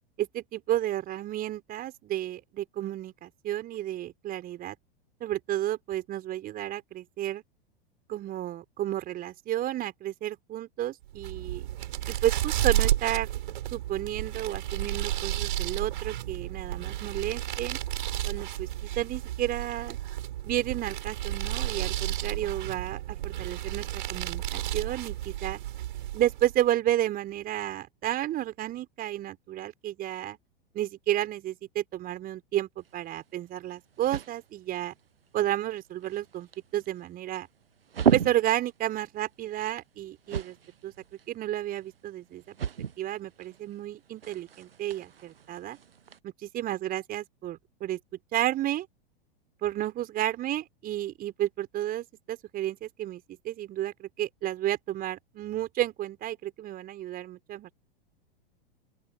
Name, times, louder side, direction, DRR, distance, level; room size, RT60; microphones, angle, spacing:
voice 1, 0.2-4.8 5.2-7.4 8.1-11.7 12.1-13.3 13.7-17.8 18.2-20.0 20.4-25.6 26.1-30.4 30.7-34.9 35.3-37.5 38.1-40.6 40.8-40.9 41.3-42.5 43.0-45.8 46.2-48.0 48.3-48.9 49.6-57.7, right 13 dB, 30° right, 4.7 m, -32 dB
sound 1, 11.1-26.6, right 13 dB, 55° right, 6.6 m, -32 dB
sound 2, 32.8-46.2, right 7 dB, 75° right, 1.0 m, -36 dB
open air
figure-of-eight pair, 95°, 29 cm